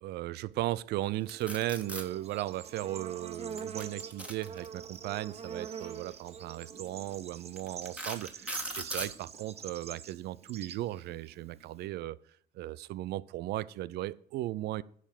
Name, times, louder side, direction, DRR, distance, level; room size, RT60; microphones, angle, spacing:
voice 1, 0.0-12.2 12.5-14.8, right 15 dB, 75° right, 0.5 m, -36 dB
sound 1, 1.3-2.0 3.5-5.0 6.1-6.3 6.9-7.0 7.6-9.1, right 1 dB, 5° right, 1.6 m, -38 dB
Bird / Insect, 1.3-11.9, right 6 dB, 35° right, 0.8 m, -45 dB
10.0 x 5.0 x 7.2 m
cardioid pair, 100°, 17 cm